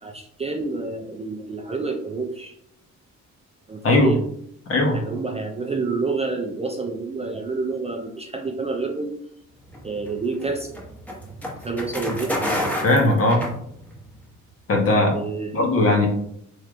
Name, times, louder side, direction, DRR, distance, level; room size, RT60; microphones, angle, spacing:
voice 1, 0.0-2.6 3.7-4.2 4.9-9.2 9.8-10.8 11.6-12.3 14.9-15.7, right 3 dB, 20° right, 3 dB, 0.3 m, -28 dB
voice 2, 3.8-4.2 4.7-5.0 12.8-13.5 14.7-15.1 15.5-16.1, left 2 dB, 50° left, 1 dB, 1.0 m, -18 dB
sound 1, 9.7-14.1, left 1 dB, 5° left, 0.9 m, -29 dB
3.2 x 2.8 x 2.5 m, 0.70 s
cardioid pair, 90°, 30 cm